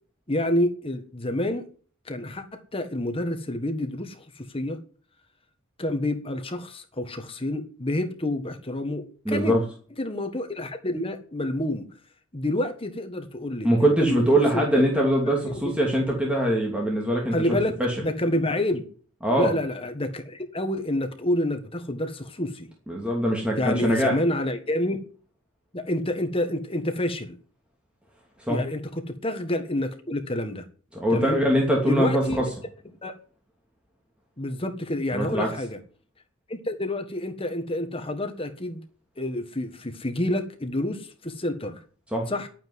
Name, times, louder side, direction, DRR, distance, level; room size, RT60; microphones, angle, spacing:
voice 1, 0.3-1.6 2.0-4.8 5.8-9.5 10.0-11.9 12.3-14.2 14.5-14.8 15.4-15.6 17.3-18.8 19.4-22.7 23.6-25.0 25.7-27.4 28.5-30.6 31.1-31.4 31.8-32.4 33.0-33.1 34.4-35.8 36.5-38.8 39.2-41.8 42.3-42.5, left 1 dB, 25° left, 6 dB, 1.6 m, -28 dB
voice 2, 9.2-9.6 13.6-18.0 19.2-19.5 22.9-24.2 28.4-28.6 30.9-32.4 35.1-35.5 42.1-42.3, right 1 dB, 5° right, -1 dB, 2.8 m, -22 dB
11.5 x 9.1 x 9.7 m, 0.43 s
head